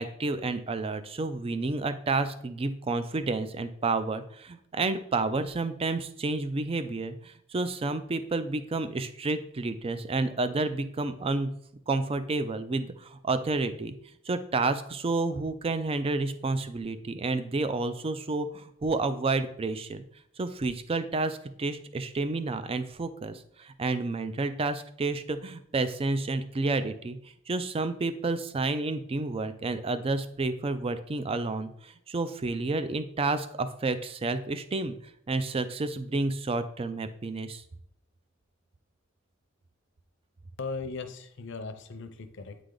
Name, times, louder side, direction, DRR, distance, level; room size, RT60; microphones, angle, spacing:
voice 1, 0.0-11.5 11.9-13.9 14.3-20.0 20.4-27.2 27.5-34.9 35.3-37.6, right 3 dB, 30° right, 11 dB, 0.4 m, -30 dB
voice 2, 40.6-42.6, left 4 dB, 65° left, 8 dB, 0.6 m, -38 dB
8.8 x 3.3 x 3.8 m, 0.70 s
head